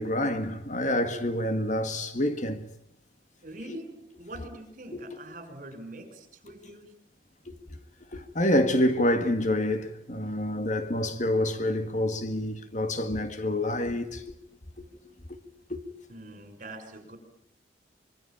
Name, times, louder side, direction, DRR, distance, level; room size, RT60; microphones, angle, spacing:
voice 1, 0.0-2.6 8.1-14.2 15.7-15.8, left 1 dB, 40° left, 1.9 m, -27 dB
voice 2, 3.4-6.9 16.1-17.2, right 1 dB, 45° right, 6.5 m, -43 dB
25.0 x 24.0 x 8.8 m
head